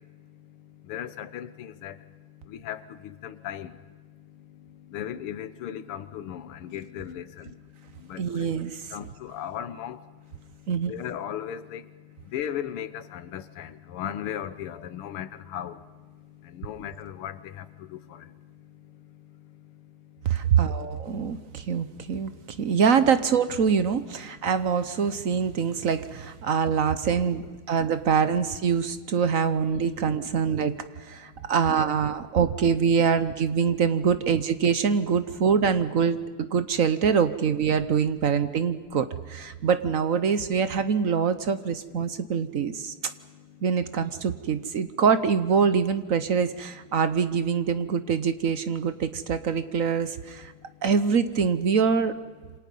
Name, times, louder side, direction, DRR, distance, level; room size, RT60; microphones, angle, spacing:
voice 1, 0.9-2.0 2.5-3.7 4.9-7.5 8.1-8.5 8.9-10.0 10.9-11.8 12.3-15.8 16.5-18.2, left 10 dB, 85° left, 1.9 m, -36 dB
voice 2, 8.2-8.8 10.7-10.9 20.2-22.3 22.6-30.7 31.1-42.9 43.6-50.5 50.8-52.1, right 6 dB, 55° right, 1.0 m, -24 dB
27.5 x 26.5 x 5.4 m
omnidirectional pair, 2.4 m